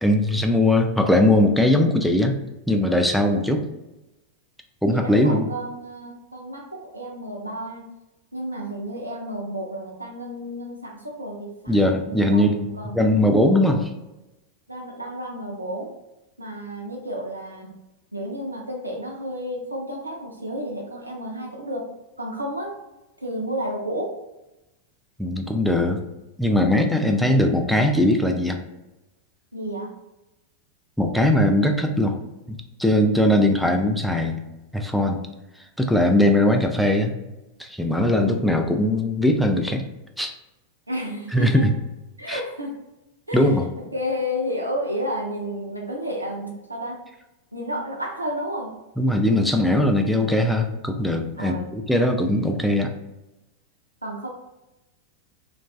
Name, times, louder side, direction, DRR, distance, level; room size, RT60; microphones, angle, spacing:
voice 1, 0.0-2.3 2.7-3.6 4.8-5.5 11.7-12.7 12.9-13.9 25.2-26.0 26.4-28.6 31.0-32.2 32.5-34.4 34.7-35.2 35.8-37.1 37.6-39.8 40.2-40.3 41.3-41.7 42.3-42.4 43.3-43.6 49.0-52.9, left 1 dB, ahead, 3 dB, 0.3 m, -20 dB
voice 2, 4.9-7.9 8.3-13.0 14.7-15.9 16.4-17.8 18.1-22.7 23.2-24.1 29.5-29.9 38.1-38.3 40.9-41.6 42.2-42.7 43.3-47.0 47.5-48.7 51.4-52.3 54.0-54.3, equal, 85° right, -1 dB, 0.4 m, -31 dB
2.4 x 2.2 x 2.3 m, 0.98 s
figure-of-eight pair, 90°, 0 cm